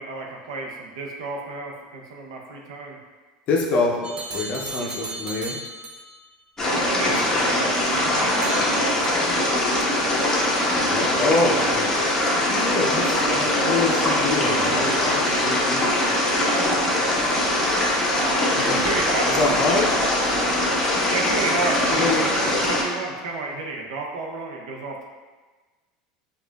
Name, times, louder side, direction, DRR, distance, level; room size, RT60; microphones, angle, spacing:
voice 1, 0.0-3.0 4.8-5.0 6.7-9.0 14.1-16.8 18.8-19.8 21.1-25.0, right 3 dB, 85° right, 0 dB, 0.6 m, -32 dB
voice 2, 3.5-5.6 7.1-7.2 10.9-11.9 12.5-15.9 18.6-19.9 21.9-22.3, left 3 dB, 50° left, -1 dB, 0.5 m, -26 dB
sound 1, 4.0-6.2 8.4-9.5 9.8-9.9, right 2 dB, 30° right, 0.4 m, -35 dB
sound 2, 6.6-22.8, left 1 dB, 15° left, 0.8 m, -22 dB
4.8 x 2.4 x 2.3 m, 1.3 s
supercardioid pair, 105°, 3 cm